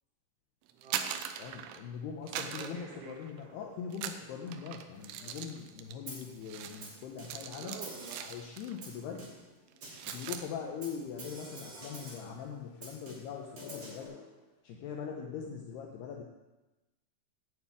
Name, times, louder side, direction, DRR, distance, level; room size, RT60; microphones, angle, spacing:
sound 1, 0.7-1.9 2.3-3.5 3.9-8.8 9.1-9.4 9.7-10.5, right 9 dB, 85° right, 3.2 m, -41 dB
voice 1, 0.8-1.2 2.6-3.1 7.5-8.2 10.8-11.1, right 6 dB, 70° right, -1 dB, 4.0 m, -48 dB
voice 2, 1.4-7.8 8.2-9.3 10.1-14.1 14.6-16.2, left 7 dB, 85° left, 1 dB, 2.3 m, -42 dB
sound 2, 2.6-14.5, left 4 dB, 65° left, 3.3 m, -57 dB
Snare drum, 6.1-6.4 6.8-7.5 7.8-8.4 8.8-9.5 9.8-10.3 10.8-12.3 12.8-14.0, right 2 dB, 35° right, 3.0 m, -47 dB
8.8 x 7.1 x 8.4 m, 1.1 s
omnidirectional pair, 5.8 m